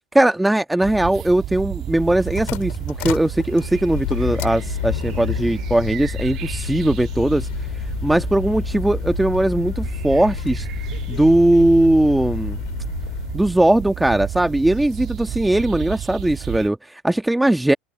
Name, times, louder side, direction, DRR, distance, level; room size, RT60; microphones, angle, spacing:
voice 1, 0.1-7.5 8.0-10.7 11.1-12.6 13.3-17.7, right 1 dB, 5° right, 1.4 m, -19 dB
sound 1, 0.8-16.7, right 13 dB, 45° right, 2.0 m, -31 dB
sound 2, 1.9-13.4, left 38 dB, 60° left, 2.7 m, -30 dB
hypercardioid pair, 80°, 0 cm